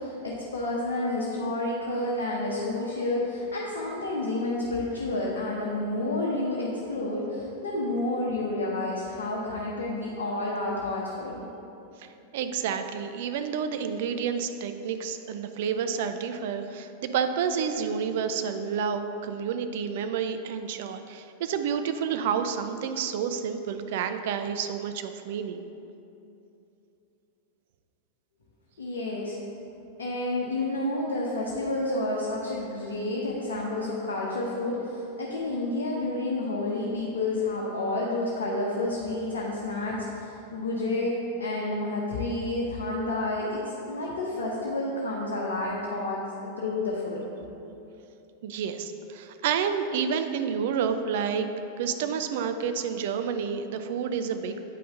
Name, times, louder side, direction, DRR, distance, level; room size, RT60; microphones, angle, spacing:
voice 1, 0.0-11.4 28.8-29.4 30.0-47.2, left 2 dB, 65° left, -4 dB, 0.9 m, -30 dB
voice 2, 12.0-25.6 48.4-51.5 51.8-54.7, right 7 dB, 55° right, 8 dB, 0.4 m, -29 dB
8.4 x 5.6 x 3.8 m, 2.8 s
figure-of-eight pair, 90°, 0 cm